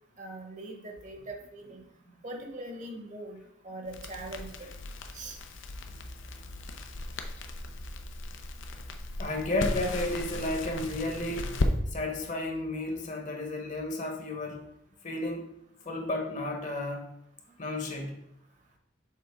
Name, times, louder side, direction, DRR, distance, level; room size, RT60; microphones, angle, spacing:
voice 1, 0.2-1.8 2.2-3.4 3.6-4.5 5.1-5.4, right 2 dB, 40° right, 2 dB, 1.0 m, -41 dB
Crackle, 3.9-11.7, left 2 dB, 90° left, 0.6 m, -36 dB
sound 1, 5.9-11.2, right 1 dB, 20° left, 0.6 m, -50 dB
voice 2, 9.2-11.5 11.9-14.6 15.0-15.5 15.8-17.0 17.6-18.2, left 2 dB, 40° left, 3 dB, 1.0 m, -32 dB
6.8 x 4.2 x 3.5 m, 0.77 s
head